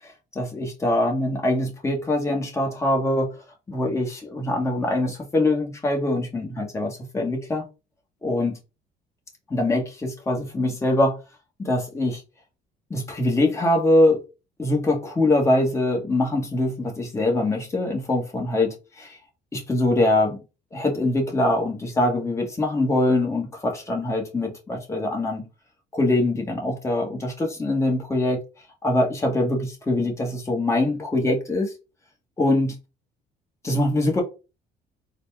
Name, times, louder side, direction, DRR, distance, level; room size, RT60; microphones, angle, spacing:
voice 1, 0.0-3.3 3.7-7.6 8.2-8.6 9.5-11.2 11.6-12.2 12.9-14.2 14.6-19.2 19.5-20.4 20.7-25.5 25.9-28.4 28.8-31.7 32.4-32.7 33.6-34.2, left 1 dB, 15° left, 1.2 m, -23 dB
4.0 x 2.2 x 3.3 m
cardioid pair, 110°, 17 cm